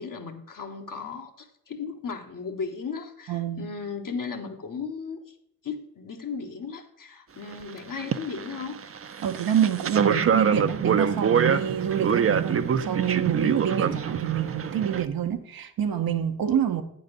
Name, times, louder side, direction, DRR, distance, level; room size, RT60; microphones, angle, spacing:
voice 1, 0.0-5.3 5.6-8.8, left 5 dB, 60° left, 1.4 m, -36 dB
voice 2, 3.3-3.6 9.2-16.8, right 9 dB, 75° right, 1.0 m, -26 dB
sound 1, 7.5-7.7 8.0-15.1, right 7 dB, 40° right, 0.6 m, -25 dB
8.8 x 4.0 x 6.6 m
supercardioid pair, 45°, 36 cm